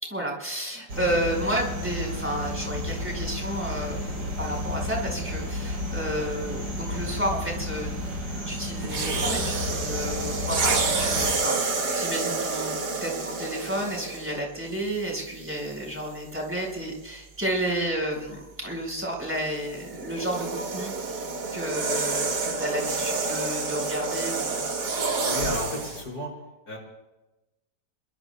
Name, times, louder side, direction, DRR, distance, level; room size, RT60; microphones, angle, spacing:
voice 1, 0.0-7.9 8.3-21.2 21.5-24.7, right 1 dB, 5° right, -1 dB, 4.7 m, -31 dB
sound 1, 0.9-11.3, left 1 dB, 85° right, 4.5 m, -32 dB
sound 2, 8.8-14.4 15.2-15.4 19.3-26.0, right 3 dB, 65° right, 2.3 m, -28 dB
voice 2, 25.3-26.3 26.7-26.8, left 1 dB, 65° left, -3 dB, 5.4 m, -33 dB
27.5 x 22.5 x 2.2 m, 1.0 s
omnidirectional pair, 1.9 m